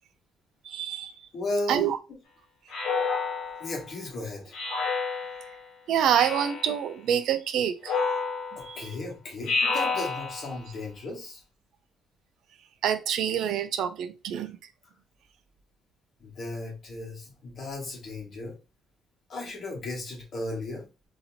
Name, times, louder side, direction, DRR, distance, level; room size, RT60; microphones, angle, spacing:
voice 1, 0.6-1.1 1.7-2.0 5.9-7.9 8.6-8.9 12.8-14.6, right 9 dB, 60° right, 0.4 m, -26 dB
voice 2, 1.3-1.9 3.6-4.5 8.5-11.4 14.3-14.4 16.2-18.6 19.3-20.9, left 2 dB, 35° left, 1.5 m, -35 dB
Speech synthesizer, 2.7-3.8 4.5-5.6 6.1-6.8 7.8-8.7 9.4-10.6, left 4 dB, 80° left, 1.1 m, -29 dB
4.1 x 2.8 x 2.8 m
cardioid pair, 170°, 0 cm